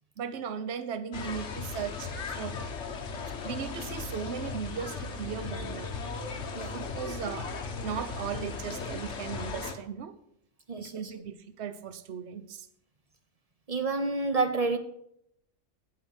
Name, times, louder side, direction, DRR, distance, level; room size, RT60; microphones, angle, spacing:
voice 1, 0.2-2.6 3.2-5.9 6.7-7.5 7.8-10.2 10.8-12.7, right 7 dB, 60° right, 1.0 m, -37 dB
sound 1, 1.1-9.7, left 4 dB, 60° left, 1.4 m, -37 dB
voice 2, 13.7-14.8, right 3 dB, 35° right, 0.7 m, -28 dB
8.7 x 7.8 x 6.2 m
omnidirectional pair, 1.3 m